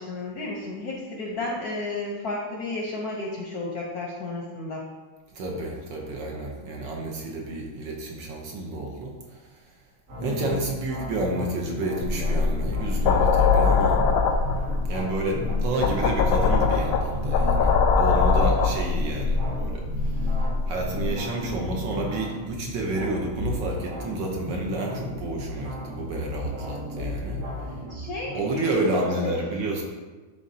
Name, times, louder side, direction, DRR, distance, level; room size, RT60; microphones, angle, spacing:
voice 1, 0.0-4.9 10.2-10.6 15.4-15.6 27.9-29.3, left 2 dB, 60° left, -2 dB, 1.0 m, -32 dB
voice 2, 5.3-9.6 10.2-14.0 14.9-20.3 20.7-27.4 28.3-29.8, right 2 dB, 65° right, -1 dB, 1.4 m, -30 dB
sound 1, 10.1-28.4, left 1 dB, 40° right, 1.4 m, -35 dB
sound 2, 12.0-21.2, left 5 dB, 85° left, 1.5 m, -22 dB
10.5 x 3.7 x 2.7 m, 1.3 s
omnidirectional pair, 2.4 m